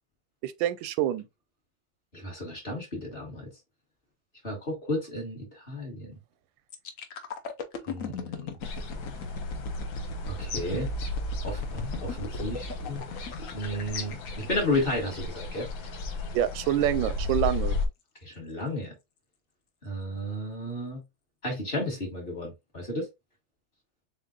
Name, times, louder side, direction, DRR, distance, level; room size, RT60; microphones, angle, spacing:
voice 1, 0.4-1.2 16.3-17.8, right 11 dB, 85° right, 1.3 m, -26 dB
voice 2, 2.1-3.5 4.4-6.1 7.9-8.5 10.3-10.9 11.4-13.0 13.5-15.7 18.2-18.9 19.8-21.0 21.4-23.1, left 1 dB, 30° left, 1.6 m, -33 dB
sound 1, 6.7-16.5 17.0-17.2, left 2 dB, 55° left, 0.9 m, -38 dB
sound 2, 8.6-17.9, left 3 dB, 90° left, 1.8 m, -35 dB
7.2 x 2.5 x 2.4 m
omnidirectional pair, 2.0 m